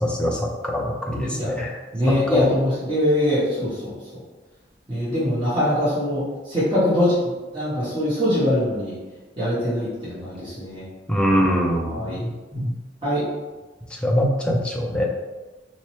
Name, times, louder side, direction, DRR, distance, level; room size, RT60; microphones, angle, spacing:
voice 1, 0.0-1.7 2.1-2.5 11.1-12.6 14.0-15.1, equal, 5° left, -1 dB, 0.4 m, -23 dB
voice 2, 1.9-3.9 4.9-6.2 6.5-7.1 7.5-8.9 9.4-10.8 11.3-12.2 13.0-13.2, left 1 dB, 25° right, -12 dB, 1.1 m, -23 dB
4.3 x 2.1 x 3.0 m, 1.2 s
head